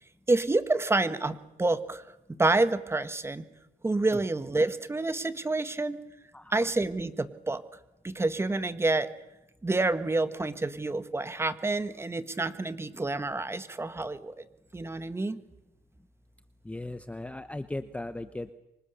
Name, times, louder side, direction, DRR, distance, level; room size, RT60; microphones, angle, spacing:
voice 1, 0.3-2.0 2.4-3.4 3.8-6.0 6.5-7.6 8.0-9.1 9.6-14.3 14.7-15.4, right 2 dB, 15° right, 12 dB, 1.5 m, -28 dB
voice 2, 6.3-6.7 16.6-18.5, left 2 dB, 5° left, 11 dB, 1.0 m, -37 dB
25.5 x 25.5 x 6.9 m, 0.93 s
cardioid pair, 110°, 17 cm